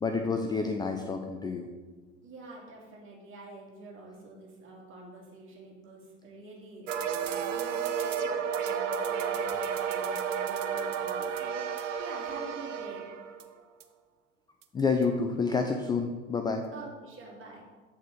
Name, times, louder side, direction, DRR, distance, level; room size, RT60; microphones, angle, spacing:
voice 1, 0.0-1.7 14.7-16.6, left 4 dB, 10° left, 4 dB, 0.4 m, -29 dB
voice 2, 2.2-13.1 16.7-17.6, right 2 dB, 35° right, -2 dB, 2.3 m, -47 dB
sound 1, 6.9-13.5 13.8-13.9 14.6-14.7 15.0-15.1, right 7 dB, 80° right, 0.6 m, -32 dB
8.0 x 4.2 x 4.5 m, 1.3 s
figure-of-eight pair, 75°, 37 cm